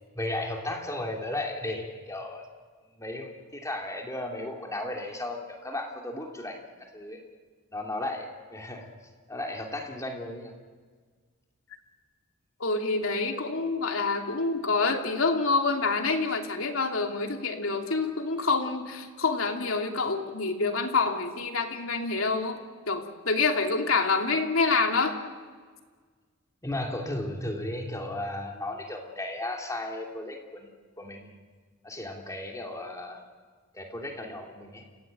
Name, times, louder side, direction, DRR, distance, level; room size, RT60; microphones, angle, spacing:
voice 1, 0.1-2.4 2.9-7.2 7.7-8.9 9.3-10.5 26.6-31.3 31.8-33.2 33.7-34.9, left 1 dB, 15° left, 1 dB, 3.0 m, -35 dB
voice 2, 12.6-25.2, left 4 dB, 80° left, 3 dB, 2.8 m, -27 dB
29.0 x 16.5 x 9.1 m, 1.5 s
head